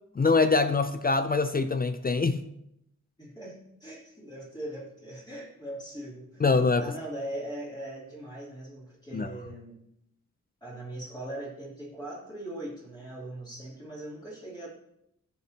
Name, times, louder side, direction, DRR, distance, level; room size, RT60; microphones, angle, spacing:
voice 1, 0.2-2.4 6.4-6.9 9.1-9.3, left 4 dB, 30° left, 10 dB, 0.4 m, -24 dB
voice 2, 3.2-6.4 6.8-9.8 10.6-14.7, right 1 dB, 15° left, -7 dB, 3.0 m, -40 dB
14.0 x 7.0 x 2.9 m, 0.79 s
wide cardioid pair, 160°, 32 cm